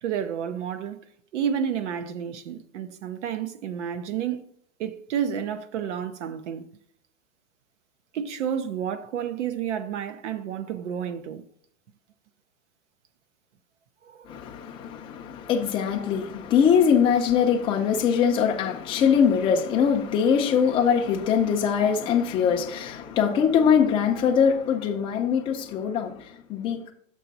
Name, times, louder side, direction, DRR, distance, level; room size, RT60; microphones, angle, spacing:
voice 1, 0.0-1.0 1.3-4.4 4.8-6.7 8.1-11.4 14.0-14.3, right 8 dB, 65° right, 0.8 m, -30 dB
voice 2, 14.3-26.9, left 7 dB, 15° left, 0.5 m, -22 dB
6.5 x 5.9 x 4.0 m
supercardioid pair, 155°, 39 cm